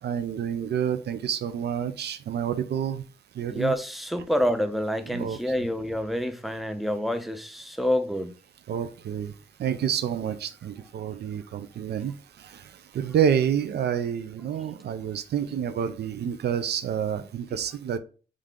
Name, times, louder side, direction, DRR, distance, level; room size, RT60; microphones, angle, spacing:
voice 1, 0.0-3.0 3.4-3.7 5.1-5.4 8.7-9.3 9.6-11.4 11.8-12.1 13.0-18.0, right 8 dB, 80° right, 0.4 m, -28 dB
voice 2, 3.5-8.3 17.5-17.6, equal, ahead, 0.4 m, -27 dB
3.7 x 3.2 x 3.6 m
wide cardioid pair, 125°, 17 cm